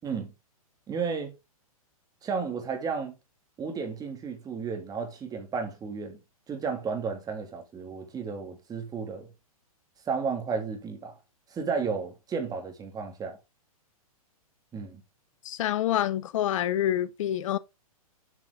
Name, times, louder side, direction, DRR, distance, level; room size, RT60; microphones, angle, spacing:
voice 1, 0.9-1.3 2.2-3.1 3.6-6.2 6.5-9.3 10.1-11.1 11.5-13.4 14.7-15.0, right 5 dB, 20° right, 2.8 m, -33 dB
voice 2, 15.4-17.6, left 11 dB, 60° left, 1.0 m, -27 dB
8.1 x 5.9 x 3.8 m
hypercardioid pair, 120°, 19 cm